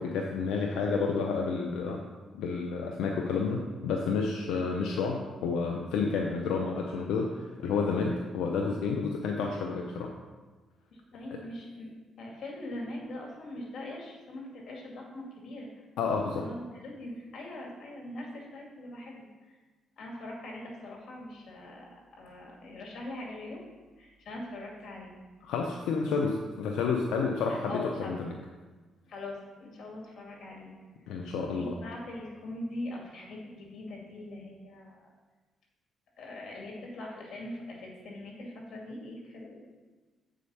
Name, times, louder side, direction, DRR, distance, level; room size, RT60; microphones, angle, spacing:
voice 1, 0.0-2.0 2.4-10.1 16.0-16.5 25.4-28.3 31.1-31.7, left 4 dB, 85° left, 1 dB, 0.7 m, -30 dB
voice 2, 10.9-11.9 12.2-15.7 16.4-19.6 20.0-23.6 24.0-25.2 27.5-28.2 29.1-30.7 31.4-35.1 36.2-39.7, left 1 dB, 65° left, -1 dB, 2.3 m, -42 dB
7.9 x 5.0 x 5.6 m, 1.3 s
cardioid pair, 90°, 0 cm